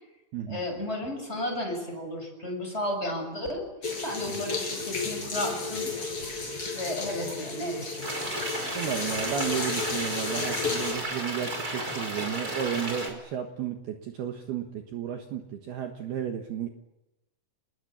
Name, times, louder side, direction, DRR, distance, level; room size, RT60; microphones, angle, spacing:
voice 1, 0.5-3.6 4.0-6.1 6.7-8.1, left 1 dB, 15° left, 3 dB, 6.6 m, -33 dB
sound 1, 3.8-10.9, left 4 dB, 30° left, 6.7 m, -33 dB
sound 2, 8.0-13.1, right 1 dB, 20° right, 5.3 m, -33 dB
voice 2, 8.7-16.7, right 9 dB, 65° right, 4 dB, 3.0 m, -33 dB
29.0 x 20.5 x 8.6 m, 0.97 s
omnidirectional pair, 5.6 m